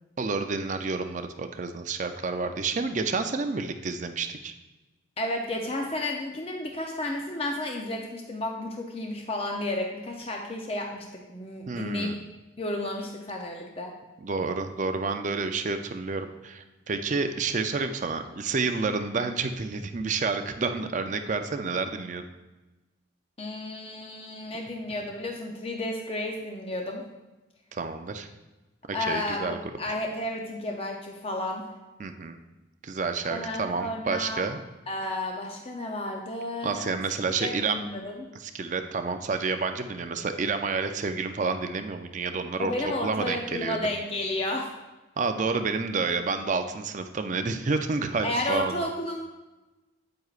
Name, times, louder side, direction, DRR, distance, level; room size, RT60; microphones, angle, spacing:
voice 1, 0.2-4.5 11.7-12.2 14.2-22.2 27.7-28.3 29.0-29.6 32.0-32.4 32.8-34.6 36.6-37.9 38.4-42.7 43.0-43.8 45.2-48.8, right 4 dB, 40° right, 7 dB, 0.5 m, -29 dB
voice 2, 5.2-12.2 12.6-13.9 23.4-27.0 28.9-31.7 33.3-34.4 34.9-36.8 37.4-38.3 42.6-44.7 48.2-49.3, left 1 dB, 30° left, 1 dB, 0.6 m, -32 dB
9.1 x 7.7 x 2.5 m, 1.1 s
head